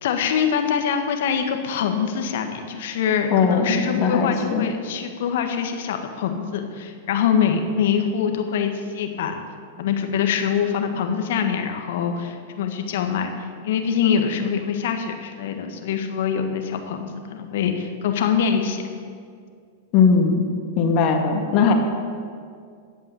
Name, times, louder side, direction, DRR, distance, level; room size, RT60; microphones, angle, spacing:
voice 1, 0.0-9.4 9.8-18.8, left 7 dB, 65° left, 5 dB, 1.5 m, -24 dB
voice 2, 3.3-4.7 19.9-20.4 20.8-21.7, left 5 dB, 45° left, 4 dB, 1.8 m, -19 dB
15.5 x 5.4 x 8.8 m, 2.2 s
hypercardioid pair, 110°, 0 cm